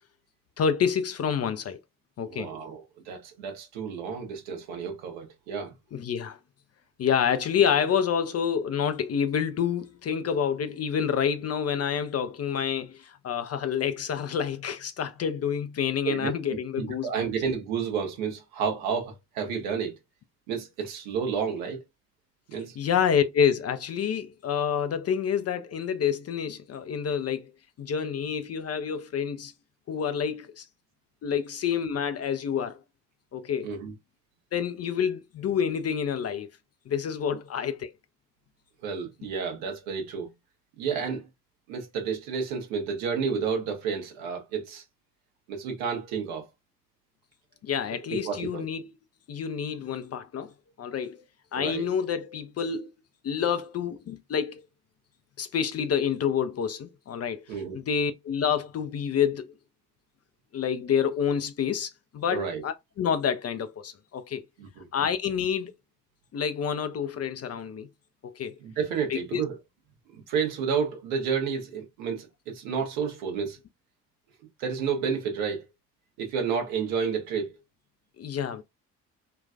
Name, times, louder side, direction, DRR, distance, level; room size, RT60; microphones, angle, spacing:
voice 1, 0.6-1.8 2.2-2.5 5.9-6.4 7.0-17.3 22.8-27.5 27.8-29.5 29.9-30.6 31.2-32.8 33.3-33.7 34.5-36.5 36.9-37.9 47.6-48.9 49.3-50.5 50.8-51.2 51.5-52.9 53.2-54.6 55.4-57.5 57.9-59.5 60.5-64.4 64.9-65.7 66.3-67.9 68.2-68.6 69.1-69.4 78.2-78.6, left 7 dB, 35° left, 0.5 m, -28 dB
voice 2, 2.3-5.7 16.0-16.3 16.8-19.9 20.5-21.8 22.5-22.8 33.6-33.9 38.8-40.3 40.8-41.2 41.7-44.8 45.5-46.5 48.1-48.7 51.5-51.9 57.5-57.8 62.3-62.6 64.6-64.9 68.6-69.6 70.3-73.6 74.6-75.6 76.2-77.6, right 6 dB, 70° right, 1.2 m, -30 dB
3.8 x 2.3 x 2.4 m
figure-of-eight pair, 45°, 47 cm